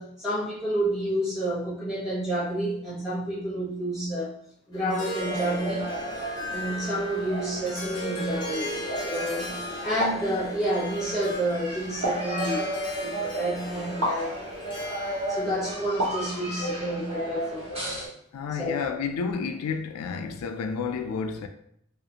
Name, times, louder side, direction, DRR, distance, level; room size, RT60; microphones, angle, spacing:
voice 1, 0.0-4.3 4.7-5.9 6.5-12.7 13.0-14.4 15.3-18.0 18.5-18.8, right 1 dB, ahead, 1.0 m, -29 dB
Harp, 4.7-15.7, left 1 dB, 20° left, 0.5 m, -37 dB
sound 1, 5.2-18.1, right 1 dB, 30° right, 0.8 m, -35 dB
sound 2, 10.0-10.3 12.0-12.4 14.0-14.2 16.0-16.3, equal, 75° right, 0.7 m, -28 dB
voice 2, 18.3-21.5, left 5 dB, 90° left, 0.3 m, -30 dB
2.5 x 2.4 x 2.7 m
head